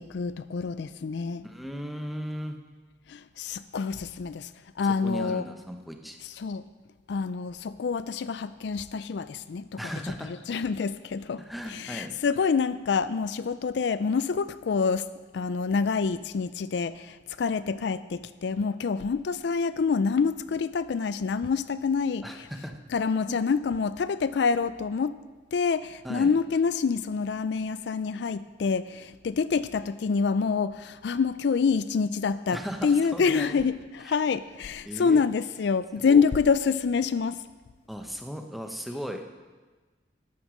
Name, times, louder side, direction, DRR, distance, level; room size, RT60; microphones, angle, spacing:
voice 1, 0.0-1.5 3.1-4.5 4.8-5.5 6.4-6.6 7.1-9.8 10.5-11.4 11.7-15.1 15.3-22.3 22.9-25.2 25.5-37.4, left 5 dB, 65° left, 15 dB, 0.4 m, -27 dB
voice 2, 1.4-2.6 4.8-6.2 9.8-10.3 11.4-12.1 22.2-22.8 23.3-23.4 26.0-26.3 32.5-33.6 34.0-34.2 34.8-35.2 36.0-36.2 37.9-39.3, equal, ahead, 4 dB, 0.9 m, -36 dB
13.5 x 9.5 x 6.3 m, 1.3 s
head